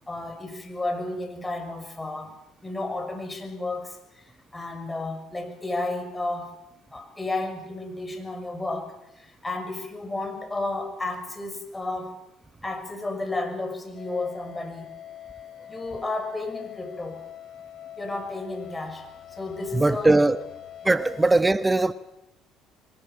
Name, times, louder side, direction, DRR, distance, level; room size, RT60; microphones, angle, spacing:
voice 1, 0.1-2.4 2.6-4.2 4.5-6.5 6.9-12.1 12.6-14.9 15.7-17.2 18.0-19.1 19.4-20.2, left 2 dB, 15° left, 6.2 m, -32 dB
sound 1, 13.9-21.3, left 10 dB, 55° left, 3.3 m, -44 dB
voice 2, 19.7-20.5 20.8-21.9, right 2 dB, 15° right, 1.0 m, -20 dB
23.0 x 19.5 x 8.9 m
hypercardioid pair, 65°, 0 cm